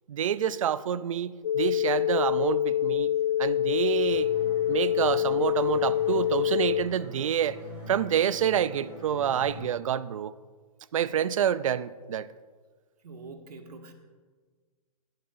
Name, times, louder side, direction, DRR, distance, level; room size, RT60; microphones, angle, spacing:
voice 1, 0.1-3.1 3.4-4.3 4.7-7.6 7.9-10.3 10.9-12.3, right 9 dB, 55° right, 17 dB, 0.5 m, -27 dB
sound 1, 1.4-6.8, left 11 dB, 35° left, 0.4 m, -26 dB
sound 2, 4.1-9.6, right 1 dB, 5° right, 2.7 m, -44 dB
voice 2, 13.0-13.9, right 3 dB, 75° right, 4 dB, 1.8 m, -44 dB
21.0 x 11.0 x 2.6 m, 1.5 s
hypercardioid pair, 175°, 20 cm